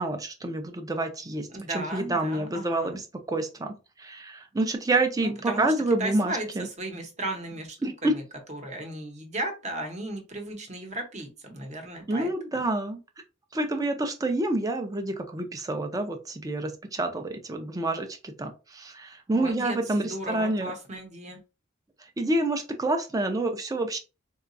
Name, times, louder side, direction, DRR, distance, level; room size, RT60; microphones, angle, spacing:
voice 1, 0.0-1.5 1.7-3.0 3.3-6.7 7.8-8.1 12.1-13.0 13.5-20.7 22.2-24.0, right 2 dB, 20° right, 6 dB, 0.4 m, -28 dB
voice 2, 1.5-3.0 5.2-5.7 6.0-7.8 8.0-8.2 8.5-12.6 19.3-21.4, right 1 dB, 35° right, 3 dB, 0.8 m, -35 dB
3.8 x 2.3 x 2.5 m, 0.30 s
head